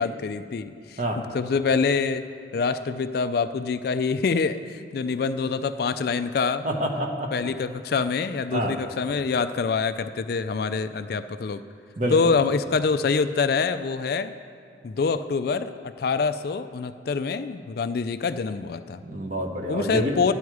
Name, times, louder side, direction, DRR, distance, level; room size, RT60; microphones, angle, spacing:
voice 1, 0.0-2.2 2.5-6.7 7.3-11.6 12.1-14.3 14.8-19.0 19.7-20.3, left 5 dB, 50° left, 11 dB, 0.3 m, -25 dB
voice 2, 6.6-7.3 8.5-8.8 12.0-12.3 19.1-20.1, right 1 dB, 40° right, 2 dB, 1.0 m, -27 dB
12.0 x 9.4 x 4.8 m, 2.5 s
head